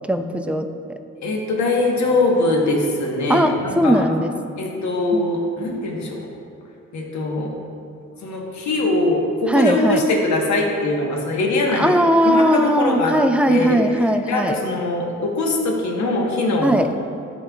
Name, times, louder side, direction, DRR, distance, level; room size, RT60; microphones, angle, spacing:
voice 1, 0.1-1.0 3.3-4.3 5.1-5.3 9.5-10.0 11.8-14.6 16.6-16.9, equal, 5° right, 6 dB, 0.3 m, -18 dB
voice 2, 1.2-4.0 4.6-6.3 6.9-7.5 8.2-11.9 12.2-13.2 13.5-13.8 14.3-16.8, left 2 dB, 70° left, 0 dB, 1.1 m, -22 dB
11.0 x 4.3 x 2.3 m, 2.5 s
cardioid pair, 90°, 30 cm